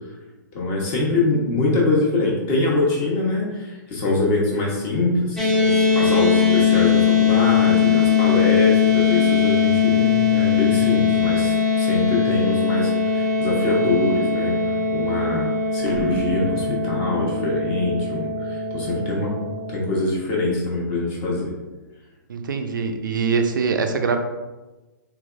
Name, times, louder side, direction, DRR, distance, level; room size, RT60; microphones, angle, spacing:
voice 1, 0.5-19.3 19.7-21.5, left 2 dB, 35° left, -3 dB, 1.0 m, -24 dB
sound 1, 5.4-19.8, left 6 dB, 5° left, 0.6 m, -20 dB
sound 2, 15.9-20.1, left 2 dB, 70° left, 0.7 m, -37 dB
voice 2, 22.3-24.2, right 5 dB, 75° right, 6 dB, 0.4 m, -23 dB
3.3 x 3.0 x 2.4 m, 1.2 s
hypercardioid pair, 125°, 11 cm